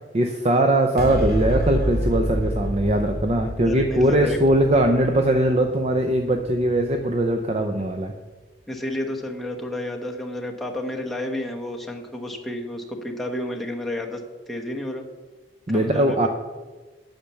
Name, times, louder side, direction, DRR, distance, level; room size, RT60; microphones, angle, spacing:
voice 1, 0.1-8.1 15.7-16.3, right 1 dB, 35° right, 4 dB, 0.6 m, -21 dB
sound 1, 1.0-7.7, equal, 60° right, 2.6 m, -29 dB
voice 2, 3.6-4.4 8.7-14.2 14.5-15.1 15.7-16.3, left 1 dB, ahead, 0 dB, 1.0 m, -31 dB
8.6 x 5.8 x 6.9 m, 1.3 s
head